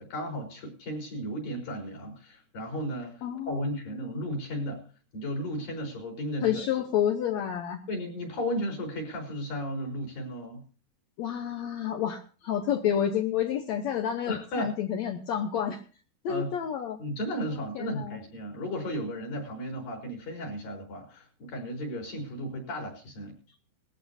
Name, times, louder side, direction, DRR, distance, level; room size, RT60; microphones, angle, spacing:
voice 1, 0.0-4.8 5.1-6.7 7.9-10.6 14.3-14.7 16.3-16.5 17.0-23.4, equal, 60° left, 1 dB, 5.7 m, -34 dB
voice 2, 3.2-3.7 6.4-7.8 11.2-15.8 16.2-17.0 17.5-18.2, left 9 dB, 85° left, 4 dB, 1.5 m, -29 dB
20.0 x 14.0 x 2.7 m, 0.37 s
omnidirectional pair, 4.6 m